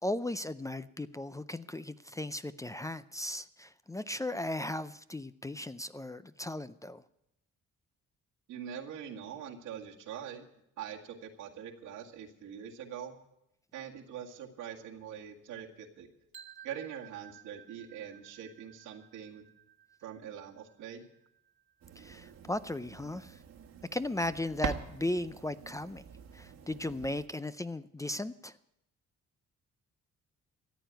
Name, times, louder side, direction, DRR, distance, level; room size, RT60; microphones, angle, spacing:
voice 1, 0.0-7.0 22.0-23.4 23.9-26.1 26.3-28.5, left 1 dB, 10° left, 14 dB, 0.5 m, -36 dB
voice 2, 8.5-10.4 10.8-13.1 13.7-16.1 16.6-19.5 20.0-21.1, right 8 dB, 85° right, 0 dB, 2.0 m, -43 dB
sound 1, 16.3-22.3, right 9 dB, 40° right, 1.5 m, -56 dB
sound 2, 21.8-27.3, right 7 dB, 60° right, 1.5 m, -44 dB
14.0 x 8.9 x 9.1 m, 0.82 s
cardioid pair, 90°, 30 cm